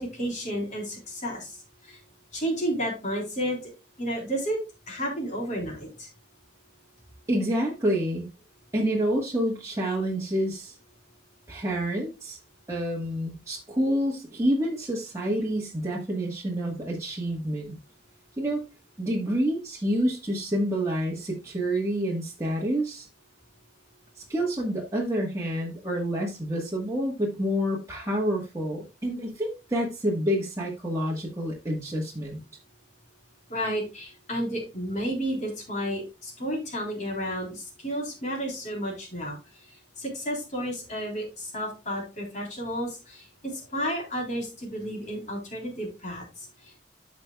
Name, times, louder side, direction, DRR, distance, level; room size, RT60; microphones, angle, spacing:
voice 1, 0.0-2.0 2.3-3.6 4.0-4.6 4.9-6.1 33.5-39.4 40.0-46.8, equal, 45° left, 3.7 m, -32 dB
voice 2, 7.3-8.3 8.7-10.8 11.5-12.4 12.7-17.8 18.4-18.6 19.0-23.1 24.3-32.4, equal, 15° right, 1.3 m, -28 dB
13.0 x 5.3 x 2.3 m
head